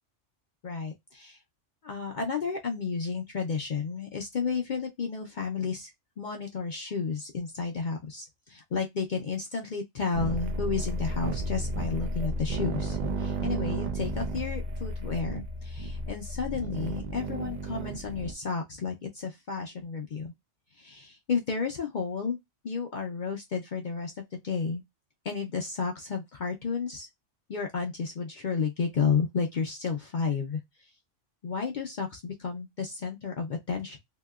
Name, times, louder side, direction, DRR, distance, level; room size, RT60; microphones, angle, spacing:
voice 1, 0.6-1.4 1.8-20.3 20.8-22.4 22.6-24.8 25.2-27.1 27.5-30.6 31.4-34.0, left 5 dB, 50° left, 0.6 m, -32 dB
sound 1, 10.1-18.3, right 1 dB, 50° right, 0.5 m, -33 dB
2.9 x 2.7 x 2.3 m
omnidirectional pair, 1.2 m